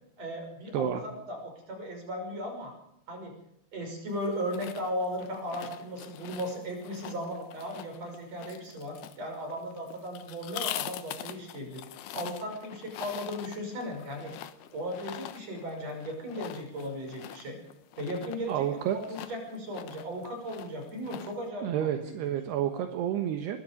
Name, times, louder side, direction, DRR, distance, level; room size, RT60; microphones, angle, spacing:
voice 1, 0.2-2.7 3.1-3.4 3.7-11.8 12.1-14.3 14.7-17.6 18.0-22.3, equal, 35° right, 3 dB, 6.8 m, -36 dB
sound 1, 4.1-21.5, left 12 dB, 75° left, 3.0 m, -44 dB
voice 2, 18.5-19.0 21.6-23.6, right 10 dB, 75° right, 6 dB, 3.3 m, -30 dB
24.5 x 22.5 x 5.3 m, 0.77 s
omnidirectional pair, 5.0 m